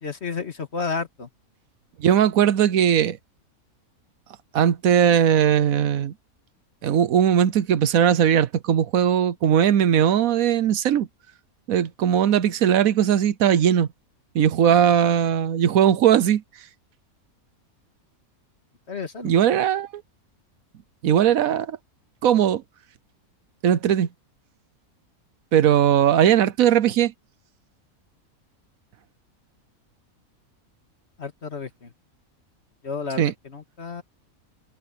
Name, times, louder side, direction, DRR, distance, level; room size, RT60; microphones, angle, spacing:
voice 1, 0.0-1.3 18.9-19.3 31.2-31.9 32.8-34.0, left 4 dB, 50° left, 2.0 m, -32 dB
voice 2, 2.0-3.2 4.5-6.1 6.8-11.1 11.7-13.9 14.3-16.4 19.2-20.0 21.0-21.8 22.2-22.6 23.6-24.1 25.5-27.1 33.2-33.3, right 9 dB, 75° right, 1.2 m, -19 dB
omnidirectional pair, 1.5 m